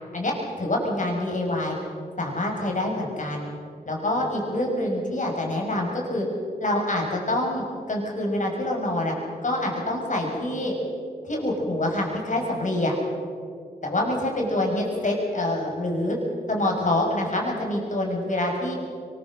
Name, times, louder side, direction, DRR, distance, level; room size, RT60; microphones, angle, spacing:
voice 1, 0.1-1.8 2.2-3.5 3.9-6.3 6.6-9.1 9.4-10.7 11.2-12.9 13.8-16.2 16.5-18.7, left 1 dB, 50° left, 0 dB, 6.4 m, -26 dB
23.0 x 21.5 x 6.5 m, 2.3 s
cardioid pair, 45°, 16 cm